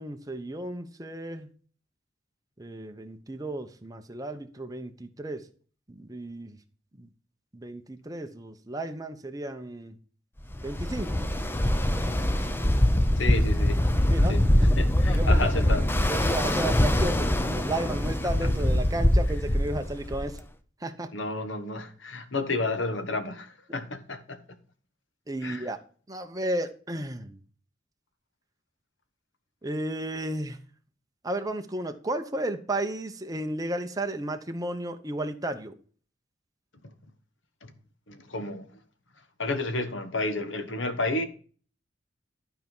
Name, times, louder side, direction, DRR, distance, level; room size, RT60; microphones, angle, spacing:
voice 1, 0.0-1.5 2.6-5.4 5.9-6.6 7.0-7.1 7.5-10.0 10.6-11.3 14.1-14.4 15.1-15.7 16.1-20.4 20.8-21.1 25.3-25.8 26.1-27.4 29.6-30.6 31.2-35.7, right 1 dB, 20° right, 0.9 m, -33 dB
Ocean, 10.5-20.4, left 1 dB, 10° left, 0.7 m, -23 dB
voice 2, 13.2-13.8 14.3-14.4 14.8-15.9 21.1-24.4 25.4-25.7 37.6-37.7 38.1-38.7 39.4-41.2, left 2 dB, 75° left, 1.3 m, -31 dB
12.0 x 4.6 x 5.5 m
head